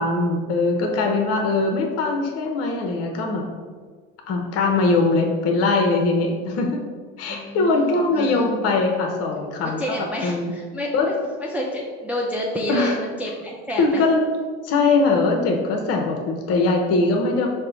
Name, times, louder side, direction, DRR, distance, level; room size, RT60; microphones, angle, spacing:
voice 1, 0.0-3.5 4.3-6.8 7.2-10.5 10.9-11.1 12.7-13.0 13.8-14.3 14.6-17.5, left 3 dB, 45° left, 2 dB, 0.7 m, -21 dB
voice 2, 7.3-8.5 9.6-14.0, left 1 dB, 5° right, -3 dB, 0.3 m, -29 dB
4.3 x 2.1 x 3.8 m, 1.5 s
supercardioid pair, 95°, 34 cm